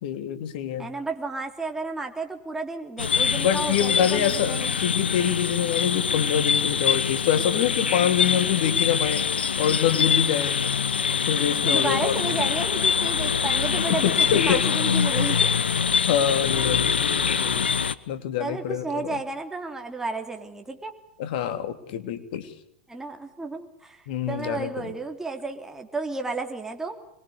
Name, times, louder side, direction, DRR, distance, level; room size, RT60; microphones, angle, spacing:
voice 1, 0.0-0.9 3.3-9.3 9.6-10.6 11.3-12.2 13.9-14.6 16.1-17.6 18.1-19.2 21.2-22.5 24.1-24.9, left 9 dB, 60° left, 10 dB, 3.0 m, -25 dB
voice 2, 0.8-4.8 11.7-15.5 18.4-20.9 22.9-27.0, right 3 dB, 10° right, 3 dB, 3.6 m, -32 dB
sound 1, 3.0-17.9, left 6 dB, 85° left, 1.1 m, -24 dB
25.5 x 23.0 x 7.0 m, 0.76 s
hypercardioid pair, 100°, 5 cm